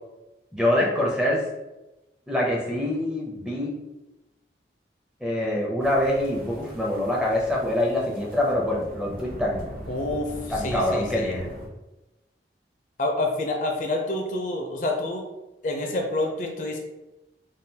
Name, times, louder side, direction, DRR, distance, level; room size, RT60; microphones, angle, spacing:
voice 1, 0.5-1.4 2.3-3.8 5.2-9.7 10.5-11.5, left 1 dB, 5° right, -3 dB, 0.5 m, -25 dB
sound 1, 5.8-11.7, equal, 50° right, 0.6 m, -41 dB
voice 2, 9.9-11.3 13.0-15.3 15.6-16.8, left 2 dB, 45° left, 2 dB, 0.4 m, -28 dB
3.6 x 2.2 x 2.7 m, 1.0 s
head